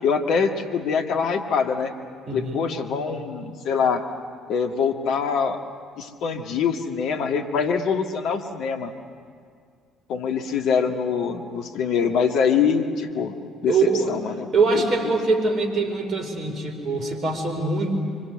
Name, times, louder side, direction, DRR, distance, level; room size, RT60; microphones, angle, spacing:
voice 1, 0.0-1.9 2.3-4.0 4.5-5.6 6.0-8.9 10.1-13.4 13.6-15.1, left 6 dB, 60° left, 4 dB, 2.1 m, -24 dB
voice 2, 2.3-2.7 13.7-14.1 14.5-17.9, right 3 dB, 45° right, 5 dB, 4.9 m, -23 dB
25.5 x 24.5 x 8.2 m, 2.1 s
figure-of-eight pair, 55°, 0 cm